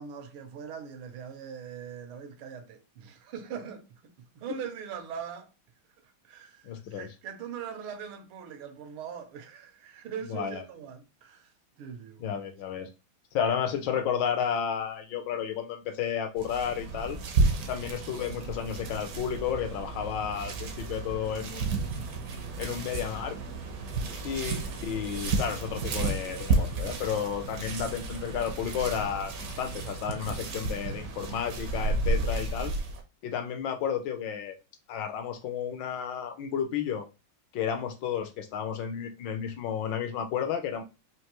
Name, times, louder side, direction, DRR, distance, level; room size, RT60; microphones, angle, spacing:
voice 1, 0.0-5.5 6.0-12.4 24.0-24.2 27.6-27.8 30.5-30.7 32.1-32.3 37.7-37.8, right 7 dB, 85° right, 1.6 m, -42 dB
voice 2, 6.6-7.1 10.3-10.6 12.2-12.9 13.3-17.2 17.7-21.8 22.6-23.4 24.2-32.7 33.2-34.5 34.9-37.1 37.5-40.8, left 8 dB, 70° left, 1.2 m, -32 dB
sound 1, 16.4-33.0, right 3 dB, 65° right, 0.9 m, -32 dB
4.6 x 2.6 x 2.9 m
omnidirectional pair, 2.3 m